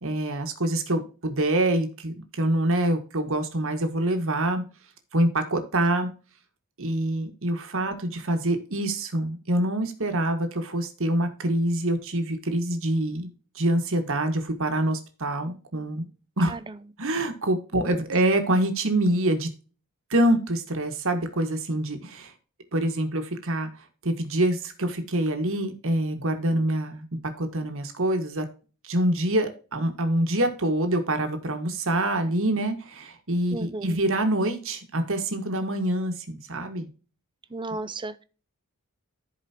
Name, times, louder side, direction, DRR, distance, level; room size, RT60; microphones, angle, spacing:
voice 1, 0.0-4.6 5.1-6.1 6.8-16.0 16.4-16.6 17.0-19.5 20.1-22.3 22.7-23.7 24.0-27.0 27.4-28.4 28.8-36.9, right 1 dB, 65° right, 1.7 m, -25 dB
voice 2, 33.5-33.9 37.5-38.2, right 2 dB, 20° right, 0.6 m, -34 dB
15.0 x 5.0 x 2.8 m
head